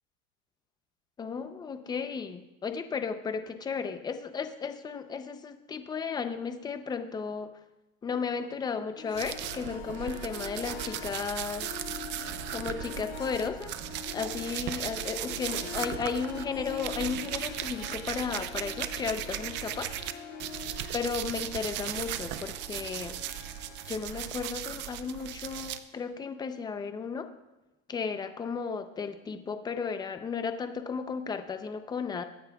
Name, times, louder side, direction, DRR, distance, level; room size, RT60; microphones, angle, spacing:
voice 1, 1.2-7.5 8.0-11.7 12.5-13.8 14.1-19.9 20.9-23.2 23.9-27.3 27.9-32.2, left 5 dB, 15° left, 8 dB, 0.6 m, -34 dB
Harp, 8.9-25.4, left 7 dB, 55° left, 3.0 m, -45 dB
sound 1, 9.2-20.1 20.4-25.8, right 12 dB, 35° right, 0.6 m, -37 dB
22.5 x 9.5 x 2.3 m, 1.0 s
supercardioid pair, 145°, 32 cm